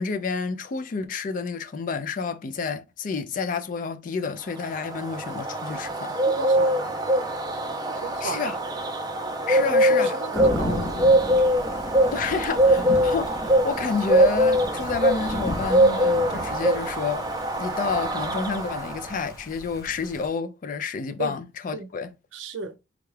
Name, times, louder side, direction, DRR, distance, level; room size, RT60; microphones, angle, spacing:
voice 1, 0.0-6.1 8.2-8.6 9.5-10.2 12.1-17.2 17.6-22.2, left 5 dB, 45° left, 0.4 m, -29 dB
Bird, 4.5-19.2, right 1 dB, 20° right, 0.5 m, -23 dB
voice 2, 6.4-6.9 7.9-8.6 9.5-10.9 21.2-21.3 21.7-21.9 22.3-22.7, right 4 dB, 90° right, 0.5 m, -34 dB
Thunder / Rain, 10.3-20.3, left 1 dB, 20° left, 0.7 m, -35 dB
3.5 x 2.3 x 3.1 m
head